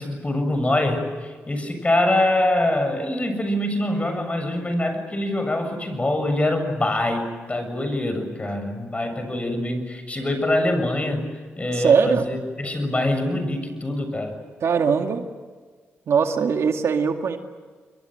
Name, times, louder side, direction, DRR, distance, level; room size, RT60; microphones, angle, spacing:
voice 1, 0.0-11.2 11.6-14.4, left 1 dB, 25° left, 7 dB, 7.2 m, -24 dB
voice 2, 11.7-12.3 14.6-15.2 16.1-17.4, right 6 dB, 70° right, 5 dB, 2.2 m, -20 dB
29.0 x 22.5 x 7.9 m, 1.5 s
cardioid pair, 65°, 5 cm